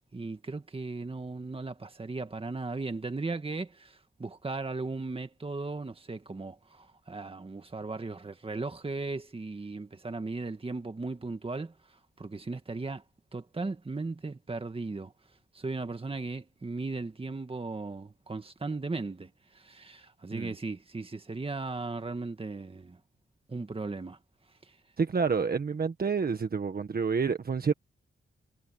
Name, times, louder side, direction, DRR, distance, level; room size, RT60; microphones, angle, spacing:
voice 1, 0.1-11.7 12.2-13.0 13.3-15.1 15.5-23.0 23.5-24.2, right 3 dB, 25° right, 2.0 m, -37 dB
voice 2, 25.0-27.7, right 5 dB, 45° right, 1.5 m, -28 dB
wide cardioid pair, 105°, 21 cm